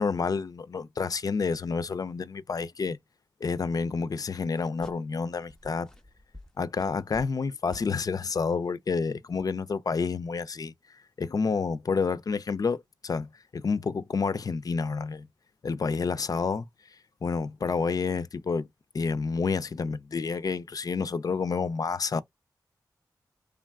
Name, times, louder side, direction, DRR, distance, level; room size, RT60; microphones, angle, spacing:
voice 1, 0.0-3.0 3.4-5.9 6.6-10.7 11.2-15.3 15.6-16.7 17.2-18.7 18.9-22.2, left 5 dB, 50° left, 0.3 m, -29 dB
sound 1, 4.3-5.2 5.5-7.5 7.7-7.9, left 1 dB, 5° left, 0.6 m, -49 dB
3.2 x 2.3 x 2.2 m
cardioid pair, 45°, 8 cm